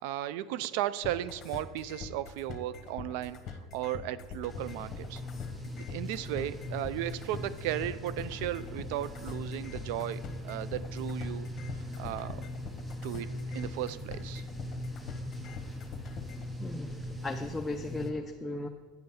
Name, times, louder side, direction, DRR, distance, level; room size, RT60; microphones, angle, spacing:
voice 1, 0.0-5.2 5.9-11.5 12.0-12.5 13.0-14.4, right 13 dB, 75° right, 16 dB, 0.4 m, -35 dB
sound 1, 1.0-16.5, left 6 dB, 40° left, 1.2 m, -43 dB
sound 2, 4.5-18.1, left 1 dB, 10° right, 1.0 m, -40 dB
voice 2, 16.6-18.7, left 2 dB, 10° left, 3 dB, 0.5 m, -36 dB
9.0 x 5.4 x 5.8 m, 1.5 s
supercardioid pair, 110°, 0 cm